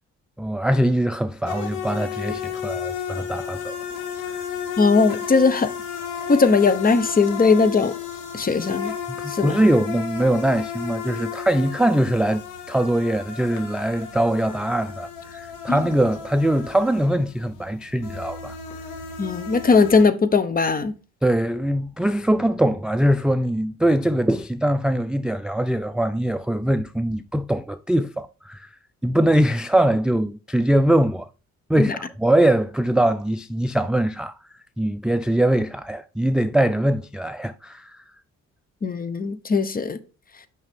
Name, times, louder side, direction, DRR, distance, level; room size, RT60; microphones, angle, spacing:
voice 1, 0.4-3.8 4.3-4.4 9.1-12.4 12.7-18.6 21.2-28.7 29.0-31.3 31.7-34.3 34.8-38.0, right 1 dB, 5° right, 0.3 m, -22 dB
sound 1, 1.5-20.0, left 8 dB, 90° left, 1.7 m, -33 dB
voice 2, 4.8-5.7 6.3-7.9 8.3-8.9 9.3-9.5 15.7-15.8 19.2-20.9 31.8-31.9 38.8-40.0, left 4 dB, 30° left, 0.9 m, -19 dB
6.3 x 5.7 x 3.6 m
cardioid pair, 90°, 30 cm